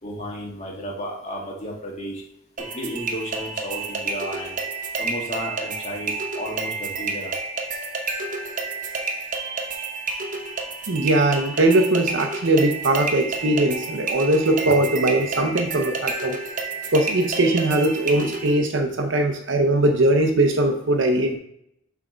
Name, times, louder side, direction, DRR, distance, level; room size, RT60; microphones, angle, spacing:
voice 1, 0.0-2.2 2.7-4.6 5.0-7.3, equal, 35° left, -2 dB, 1.8 m, -33 dB
sound 1, 2.6-18.6, right 3 dB, 40° right, 0.9 m, -30 dB
voice 2, 10.9-16.4 16.9-21.4, right 1 dB, 70° right, 5 dB, 0.7 m, -20 dB
7.5 x 3.5 x 5.1 m, 0.75 s
head